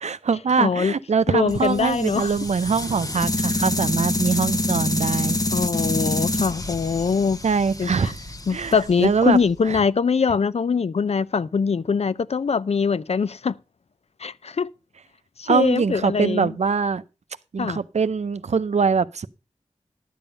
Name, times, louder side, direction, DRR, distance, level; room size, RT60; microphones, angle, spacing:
voice 1, 0.0-5.4 7.4-8.2 8.5-9.4 9.7-9.8 15.5-17.0 17.5-19.3, right 5 dB, 70° right, 0.6 m, -23 dB
voice 2, 0.6-0.9 1.3-2.3 5.5-7.4 7.8-8.1 8.5-13.6 14.2-14.7 15.4-16.5 17.6-17.8, left 5 dB, 65° left, 0.5 m, -22 dB
sound 1, 1.5-9.6, left 2 dB, 30° left, 1.0 m, -27 dB
11.0 x 7.1 x 5.5 m
cardioid pair, 45°, 12 cm